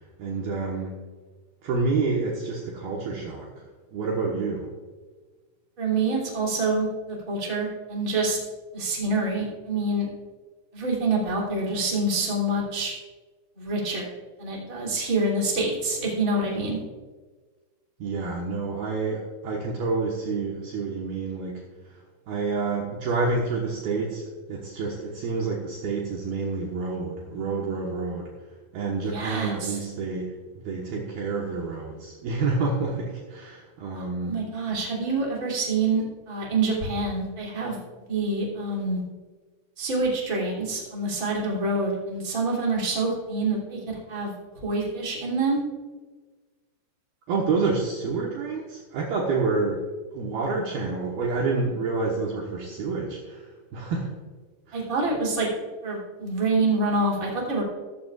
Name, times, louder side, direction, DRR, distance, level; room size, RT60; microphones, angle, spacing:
voice 1, 0.2-1.0 1.6-3.5 3.9-4.7 18.0-22.0 22.3-28.3 28.7-30.4 30.6-34.4 47.3-49.8 50.1-54.1 54.7-54.8, right 4 dB, 65° right, -2 dB, 2.7 m, -28 dB
voice 2, 5.8-8.4 8.7-10.0 10.7-12.9 13.6-14.1 14.4-16.8 29.0-29.8 33.9-37.8 38.1-39.0 39.8-44.3 44.6-45.6 54.7-55.5 55.8-57.6, right 2 dB, 20° right, -4 dB, 2.8 m, -26 dB
15.0 x 14.0 x 2.5 m, 1.3 s
omnidirectional pair, 5.4 m